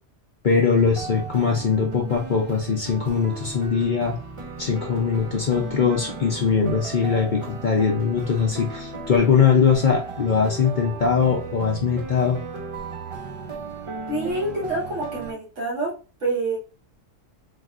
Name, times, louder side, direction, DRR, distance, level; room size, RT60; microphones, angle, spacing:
voice 1, 0.4-4.2 4.6-12.4, left 6 dB, 50° left, 0 dB, 0.6 m, -21 dB
sound 1, 0.8-15.3, right 3 dB, 55° right, 0.3 m, -35 dB
voice 2, 14.1-15.9 16.2-16.6, right 2 dB, 70° right, -3 dB, 1.5 m, -27 dB
4.0 x 2.1 x 2.4 m, 0.33 s
omnidirectional pair, 1.3 m